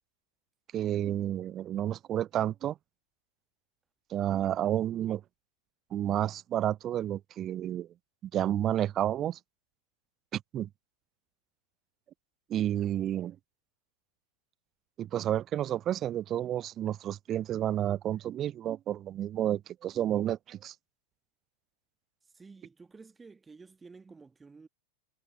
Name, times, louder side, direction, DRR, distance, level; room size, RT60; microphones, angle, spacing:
voice 1, 0.7-2.8 4.1-5.2 5.9-7.9 8.2-9.4 10.3-10.7 12.5-13.4 15.0-20.7, right 11 dB, 30° right, 0.5 m, -30 dB
voice 2, 22.3-24.7, right 4 dB, 15° right, 1.4 m, -52 dB
figure-of-eight pair, 90°, 0 cm